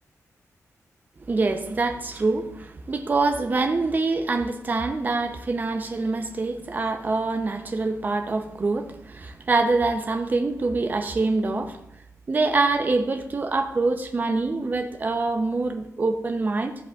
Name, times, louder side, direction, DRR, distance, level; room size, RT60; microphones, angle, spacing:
voice 1, 1.3-11.8 12.3-16.7, right 3 dB, 30° right, 5 dB, 0.6 m, -25 dB
13.0 x 5.4 x 2.4 m, 0.86 s
wide cardioid pair, 150°, 6 cm